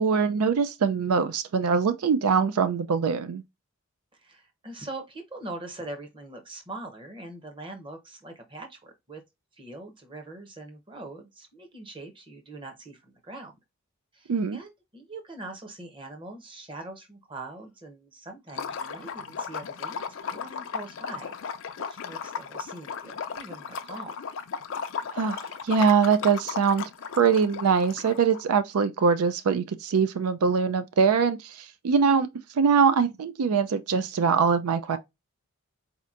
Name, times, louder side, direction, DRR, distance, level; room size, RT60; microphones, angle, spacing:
voice 1, 0.0-3.4 14.3-14.6 25.1-26.8 27.2-32.3 32.5-35.0, right 5 dB, 80° right, 0.4 m, -23 dB
voice 2, 4.2-9.2 9.5-13.5 14.1-24.1, right 2 dB, 20° right, 0.8 m, -42 dB
Liquid, 18.5-28.4, left 6 dB, 60° left, 0.4 m, -36 dB
4.3 x 2.8 x 2.4 m
head